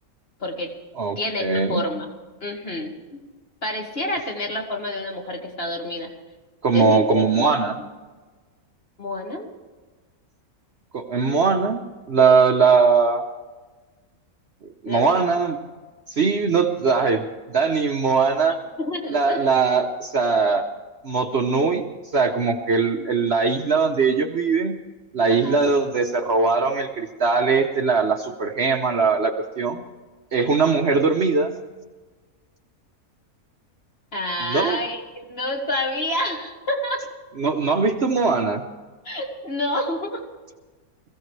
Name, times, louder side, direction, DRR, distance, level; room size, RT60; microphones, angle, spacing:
voice 1, 0.4-0.7 1.2-2.1 2.4-2.9 3.6-6.1 6.7-7.5 9.0-9.5 14.9-15.1 18.4-19.5 25.3-25.6 34.1-37.0 39.0-40.2, left 1 dB, 40° left, 0 dB, 2.3 m, -28 dB
voice 2, 1.0-1.8 6.6-7.8 10.9-11.8 12.1-13.2 14.8-15.6 16.1-18.6 19.1-20.6 21.0-21.9 22.1-24.8 25.1-29.8 30.3-31.5 34.4-34.8 37.4-38.6, right 4 dB, 50° right, 4 dB, 1.0 m, -20 dB
22.0 x 15.5 x 3.3 m, 1.3 s
omnidirectional pair, 1.6 m